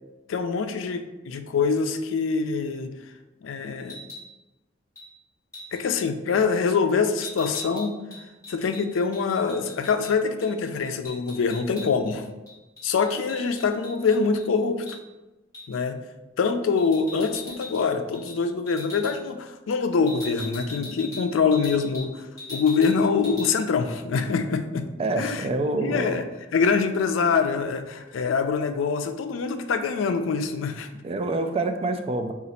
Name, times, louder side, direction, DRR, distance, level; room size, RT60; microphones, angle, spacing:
voice 1, 0.3-3.0 3.4-4.0 5.7-8.0 8.5-12.3 12.8-15.0 15.7-16.0 16.4-24.9 25.2-26.2 26.5-30.9, left 5 dB, 85° left, 8 dB, 0.4 m, -25 dB
sound 1, 3.8-4.3 5.0-5.1 5.5-5.8 7.2-10.1 10.4-10.5 10.8-12.1 12.5-14.4 14.9-15.0 15.5-15.8 16.8-17.8 18.1-18.4 18.7-19.1 20.1-22.1 22.4-23.0 23.2-23.5, left 2 dB, 20° left, 1.5 m, -40 dB
voice 2, 25.0-26.2 31.0-32.3, right 2 dB, 30° right, 6 dB, 0.3 m, -26 dB
3.9 x 2.4 x 4.2 m, 1.1 s
head